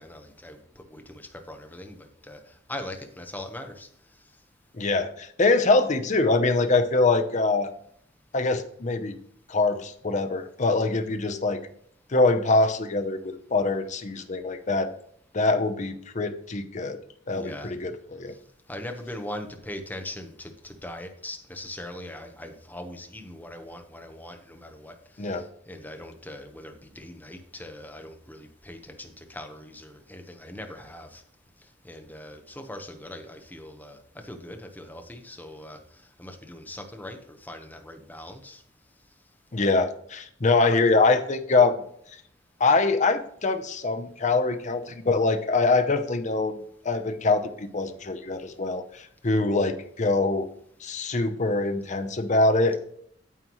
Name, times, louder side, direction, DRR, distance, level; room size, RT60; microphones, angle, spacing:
voice 1, 0.0-3.9 17.3-17.7 18.3-18.4 18.7-31.2 31.6-38.6, left 1 dB, 10° left, 5 dB, 1.1 m, -41 dB
voice 2, 4.7-7.7 8.3-9.2 9.5-11.6 12.1-14.9 15.3-17.0 17.3-18.3 25.2-25.4 39.5-41.8 42.6-46.6 46.8-50.5 50.8-52.8, left 3 dB, 40° left, 7 dB, 0.8 m, -24 dB
9.2 x 7.9 x 3.1 m, 0.66 s
head